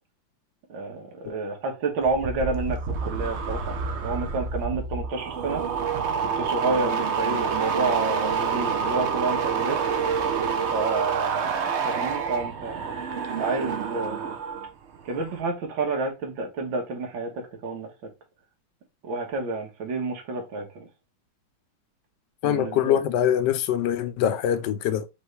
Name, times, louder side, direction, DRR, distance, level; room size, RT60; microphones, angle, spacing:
voice 1, 0.7-5.6 6.2-9.8 10.7-13.0 13.4-14.3 15.1-17.9 19.0-20.9 22.4-23.0, right 3 dB, 85° right, 2.0 m, -30 dB
sound 1, 2.0-14.7 15.0-15.4, right 6 dB, 60° right, 0.7 m, -28 dB
voice 2, 22.4-25.1, left 10 dB, 75° left, 1.1 m, -23 dB
5.3 x 3.1 x 3.2 m
omnidirectional pair, 2.1 m